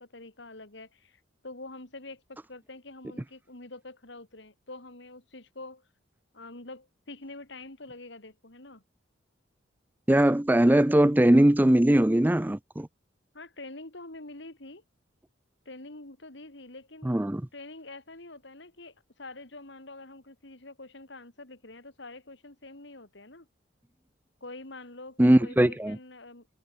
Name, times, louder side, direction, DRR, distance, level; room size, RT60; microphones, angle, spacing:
voice 1, 0.0-5.9 6.3-8.8 13.3-14.8 15.6-17.1 17.5-23.5 24.4-26.5, left 2 dB, 60° left, 2.8 m, -46 dB
voice 2, 10.1-12.9 17.0-17.4 25.2-26.0, right 1 dB, 10° right, 0.4 m, -20 dB
head